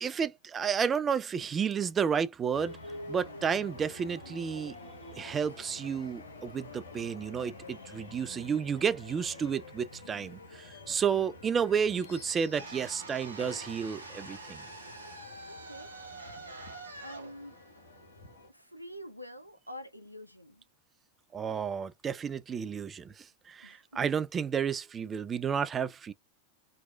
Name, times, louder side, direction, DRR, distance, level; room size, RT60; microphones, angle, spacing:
voice 1, 0.0-2.8 3.1-4.8 5.2-14.6 21.3-26.1, right 7 dB, 20° right, 0.3 m, -31 dB
sound 1, 2.5-18.5, left 2 dB, 75° left, 0.8 m, -48 dB
sound 2, 12.5-18.6, right 3 dB, 75° right, 0.7 m, -46 dB
voice 2, 15.4-16.0 17.0-17.7 18.5-20.6 23.6-24.0, equal, 90° left, 0.4 m, -47 dB
3.0 x 2.0 x 2.3 m
figure-of-eight pair, 90°, 0 cm